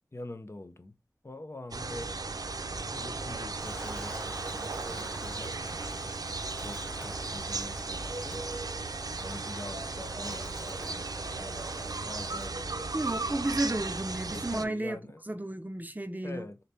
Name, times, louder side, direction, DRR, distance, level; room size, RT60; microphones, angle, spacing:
voice 1, 0.1-1.0 1.2-2.2 2.9-13.6 14.3-15.2 16.2-16.6, left 2 dB, 40° left, 0.6 m, -45 dB
sound 1, 1.7-14.6, right 3 dB, 65° right, 0.5 m, -36 dB
Wind, 3.6-12.5, equal, 15° left, 1.1 m, -48 dB
voice 2, 12.9-15.0 15.3-16.5, right 1 dB, 25° right, 0.6 m, -32 dB
4.0 x 3.3 x 2.8 m
wide cardioid pair, 40°, 7 cm